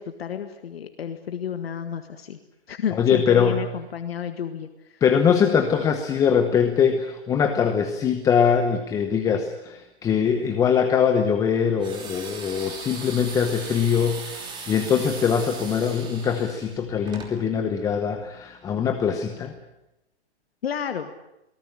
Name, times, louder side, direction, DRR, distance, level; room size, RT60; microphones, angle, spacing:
voice 1, 0.0-2.4 2.7-5.0 20.6-21.1, left 8 dB, 65° left, 8 dB, 1.8 m, -31 dB
voice 2, 2.9-3.6 5.0-19.5, left 7 dB, 10° left, 7 dB, 0.9 m, -22 dB
sound 1, 11.8-17.3, right 5 dB, 15° right, 3.0 m, -38 dB
23.5 x 18.5 x 10.0 m, 0.90 s
hypercardioid pair, 150°, 33 cm